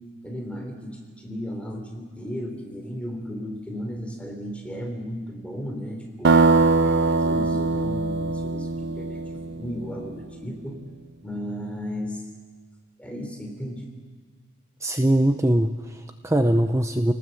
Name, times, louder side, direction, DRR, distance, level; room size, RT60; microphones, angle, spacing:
voice 1, 0.2-6.4 6.8-10.8 11.2-12.2 13.0-13.8, equal, 5° left, 1 dB, 3.4 m, -35 dB
sound 1, 6.2-10.0, right 3 dB, 55° right, 0.7 m, -22 dB
voice 2, 14.8-17.1, right 1 dB, 15° right, 7 dB, 0.7 m, -22 dB
30.0 x 19.0 x 7.8 m, 1.5 s
head